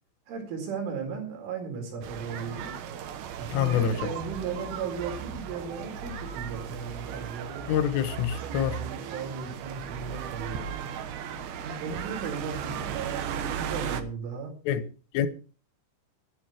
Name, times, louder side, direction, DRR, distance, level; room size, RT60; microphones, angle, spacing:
voice 1, 0.3-2.7 3.4-7.6 8.5-10.6 11.6-14.5, right 5 dB, 85° right, 6.7 m, -36 dB
sound 1, 2.0-14.0, right 8 dB, 65° right, 2.9 m, -36 dB
voice 2, 3.5-4.0 7.7-8.7 14.7-14.8 15.1-15.3, left 9 dB, 90° left, 3.8 m, -25 dB
12.5 x 11.0 x 6.1 m
omnidirectional pair, 5.5 m